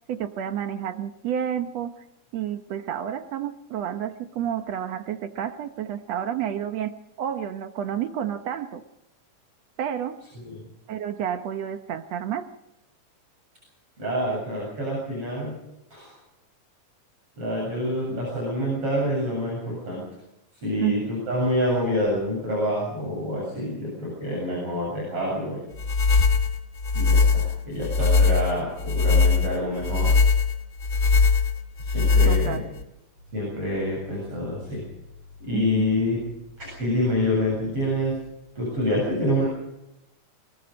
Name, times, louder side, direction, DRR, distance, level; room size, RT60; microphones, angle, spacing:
voice 1, 0.1-1.9 2.3-6.9 7.2-8.8 9.8-10.2 10.9-12.5 20.8-21.0 32.3-32.6 35.5-35.9, right 9 dB, 65° right, 9 dB, 1.8 m, -30 dB
voice 2, 14.0-15.5 15.9-16.1 17.4-20.0 20.6-25.6 26.9-30.1 31.8-32.7 33.3-34.8 35.4-36.2 36.6-38.2 38.6-39.5, left 1 dB, 45° right, -4 dB, 8.6 m, -27 dB
sound 1, 25.8-32.8, left 4 dB, 85° left, 0.7 m, -20 dB
23.5 x 21.0 x 5.2 m, 0.90 s
omnidirectional pair, 3.8 m